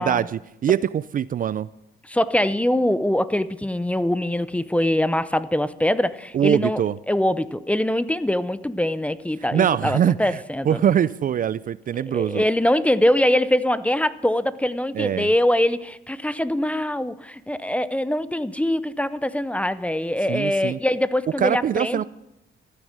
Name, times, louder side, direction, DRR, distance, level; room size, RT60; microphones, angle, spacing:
voice 1, 0.0-1.7 6.3-7.0 9.5-12.4 14.9-15.3 20.3-20.8 21.4-22.0, right 9 dB, 45° right, 17 dB, 0.4 m, -23 dB
voice 2, 2.1-6.8 7.1-10.8 12.0-22.0, left 1 dB, 5° left, 15 dB, 0.6 m, -23 dB
14.5 x 9.8 x 6.6 m, 0.89 s
cardioid pair, 90°, 20 cm